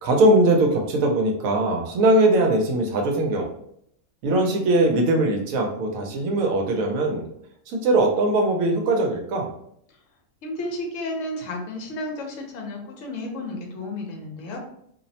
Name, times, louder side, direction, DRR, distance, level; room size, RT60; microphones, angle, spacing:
voice 1, 0.0-3.5 4.2-7.3 7.7-9.5, right 2 dB, 75° right, 2 dB, 0.9 m, -20 dB
voice 2, 10.4-14.6, left 1 dB, 70° left, 2 dB, 0.9 m, -32 dB
2.6 x 2.0 x 2.7 m, 0.71 s
omnidirectional pair, 1.5 m